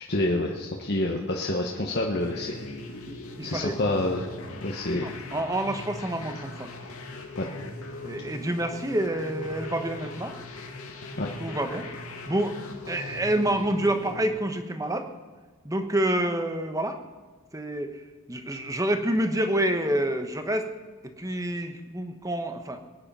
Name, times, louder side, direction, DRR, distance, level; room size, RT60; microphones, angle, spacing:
voice 1, 0.1-2.6 3.4-4.2 4.6-5.1 7.4-7.5 11.2-11.3, left 1 dB, 50° left, 0 dB, 1.2 m, -27 dB
sound 1, 2.2-14.3, left 2 dB, 85° left, 2.2 m, -40 dB
voice 2, 3.1-3.8 4.9-6.7 8.0-10.3 11.4-11.9 12.3-12.6 12.9-15.1 15.6-17.0 17.5-18.0 18.3-20.7 21.2-22.8, right 1 dB, 15° right, 7 dB, 1.1 m, -28 dB
21.5 x 9.9 x 5.6 m, 1.3 s
head